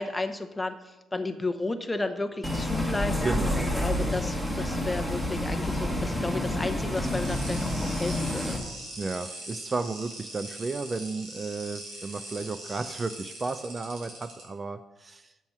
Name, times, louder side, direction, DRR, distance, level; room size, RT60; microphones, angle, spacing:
voice 1, 0.0-3.2 3.8-8.6, left 2 dB, 15° left, 7 dB, 0.7 m, -33 dB
Bus, 2.4-8.6, left 1 dB, 5° right, 1.3 m, -29 dB
voice 2, 3.2-4.1 9.0-15.3, right 3 dB, 30° right, 11 dB, 0.4 m, -33 dB
sound 1, 7.0-14.4, right 1 dB, 90° right, 3.1 m, -41 dB
7.3 x 6.0 x 5.4 m, 1.1 s
cardioid pair, 90°, 0 cm